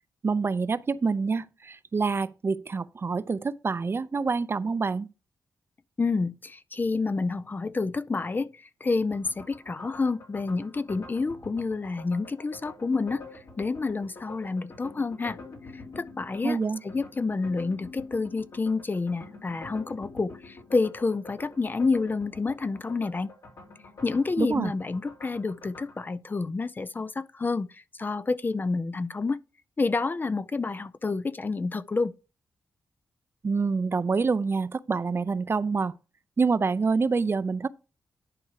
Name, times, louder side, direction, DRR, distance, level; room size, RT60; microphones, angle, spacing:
voice 1, 0.2-5.1 16.4-16.8 24.4-24.7 33.4-35.9 36.4-37.7, right 4 dB, 40° right, 0.5 m, -26 dB
voice 2, 6.0-8.5 8.8-13.2 13.6-15.4 15.7-23.3 24.0-27.7 28.0-29.4 29.8-32.1, left 3 dB, 30° left, 0.4 m, -29 dB
sound 1, 9.1-26.0, left 3 dB, 75° left, 2.9 m, -47 dB
11.0 x 4.6 x 4.7 m
cardioid pair, 75°, 6 cm